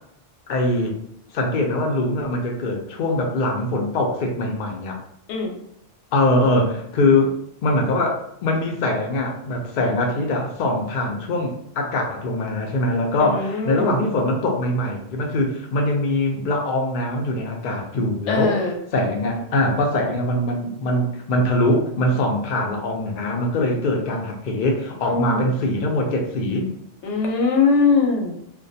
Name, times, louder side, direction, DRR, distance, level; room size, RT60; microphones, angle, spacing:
voice 1, 0.5-1.0 1.3-5.0 6.1-7.3 7.6-18.6 18.9-26.7, left 1 dB, 60° left, 1 dB, 0.5 m, -22 dB
voice 2, 13.2-14.0 18.3-18.8 25.1-25.5 27.0-28.3, left 4 dB, 75° left, 1 dB, 0.9 m, -21 dB
2.2 x 2.2 x 2.6 m, 0.71 s
omnidirectional pair, 1.2 m